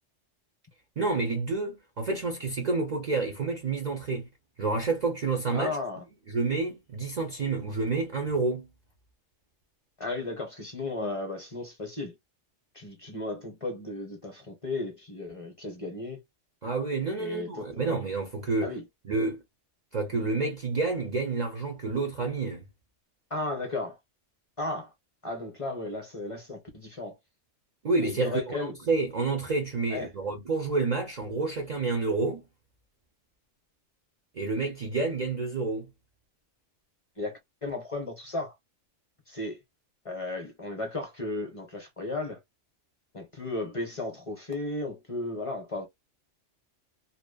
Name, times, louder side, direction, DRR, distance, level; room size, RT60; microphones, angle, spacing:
voice 1, 1.0-4.3 4.6-5.8 6.3-8.7 16.6-18.7 19.1-19.4 19.9-22.6 27.8-32.4 34.3-35.9, right 3 dB, 45° right, 0.6 m, -29 dB
voice 2, 5.5-6.1 10.0-12.2 12.7-16.2 17.2-18.0 18.6-18.8 23.3-24.0 24.6-24.9 25.2-27.2 27.9-28.8 29.9-30.1 37.2-38.5 39.3-39.6 40.0-42.4 43.1-45.9, left 2 dB, 30° left, 0.8 m, -35 dB
2.8 x 2.1 x 2.2 m
omnidirectional pair, 1.2 m